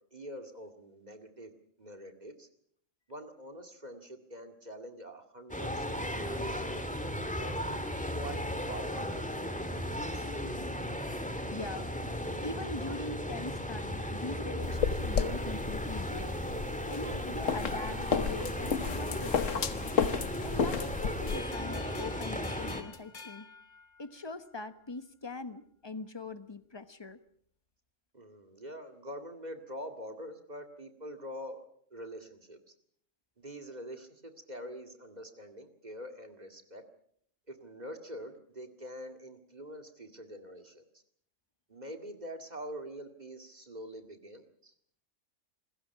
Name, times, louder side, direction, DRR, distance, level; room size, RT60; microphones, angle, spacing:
voice 1, 0.0-1.5 1.8-2.5 3.1-6.5 7.3-7.8 8.2-9.3 9.9-10.4 28.1-31.6 31.9-32.7 33.4-36.8 37.5-40.8 41.7-44.7, equal, 35° right, 5 dB, 2.2 m, -45 dB
sound 1, 5.5-22.8, equal, 5° left, 1.8 m, -36 dB
voice 2, 11.5-16.4 16.9-20.0 20.4-23.5 24.0-27.2, left 3 dB, 20° left, 11 dB, 1.1 m, -42 dB
sound 2, 14.6-21.4, left 6 dB, 90° left, 1.5 m, -33 dB
sound 3, 21.3-24.5, left 4 dB, 40° left, 1.3 m, -49 dB
28.0 x 21.0 x 5.9 m, 0.64 s
omnidirectional pair, 1.3 m